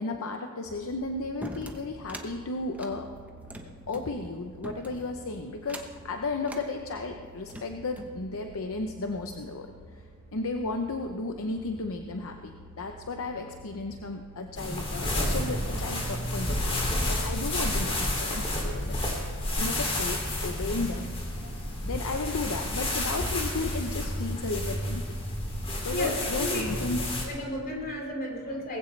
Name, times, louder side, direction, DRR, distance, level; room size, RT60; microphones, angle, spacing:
voice 1, 0.0-3.1 3.9-9.7 10.3-16.8 17.1-19.1 19.6-25.0 25.8-27.2, left 3 dB, 65° left, 5 dB, 0.7 m, -34 dB
sound 1, 0.6-16.8, right 2 dB, 40° right, 4.1 m, -51 dB
sound 2, 1.4-2.3 2.7-4.1 4.6-5.1 5.6-6.0 6.4-6.7 7.3-8.2, right 1 dB, 5° right, 1.0 m, -42 dB
sound 3, 14.5-27.2, left 1 dB, 25° left, 2.7 m, -30 dB
voice 2, 26.4-26.7 27.2-28.8, equal, 45° left, -1 dB, 3.4 m, -33 dB
19.5 x 16.0 x 3.3 m, 2.2 s
head